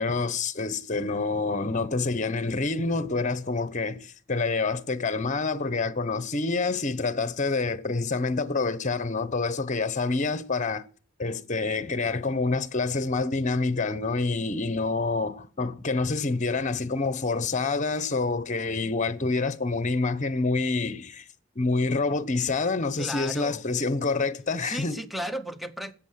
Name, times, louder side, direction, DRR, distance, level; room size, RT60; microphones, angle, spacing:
voice 1, 0.0-10.8 11.2-21.2 21.5-25.0, left 3 dB, 40° left, 1.0 m, -27 dB
voice 2, 23.0-23.6 24.6-25.9, equal, ahead, 0.9 m, -34 dB
12.5 x 8.6 x 7.5 m
head